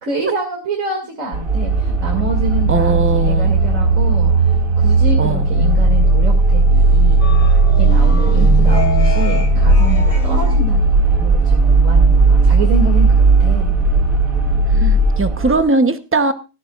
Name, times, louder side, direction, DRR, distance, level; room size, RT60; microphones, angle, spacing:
voice 1, 0.0-7.4 7.8-13.8 15.5-15.6, right 1 dB, 65° right, 1 dB, 2.9 m, -26 dB
sound 1, 1.3-15.6, right 3 dB, 85° right, 2.0 m, -14 dB
voice 2, 2.7-3.5 5.2-5.5 8.3-9.1 14.7-16.3, right 2 dB, 10° right, 9 dB, 0.7 m, -19 dB
sound 2, 7.2-10.6, left 2 dB, 85° left, 2.7 m, -23 dB
17.0 x 14.0 x 2.4 m, 0.31 s
omnidirectional pair, 1.4 m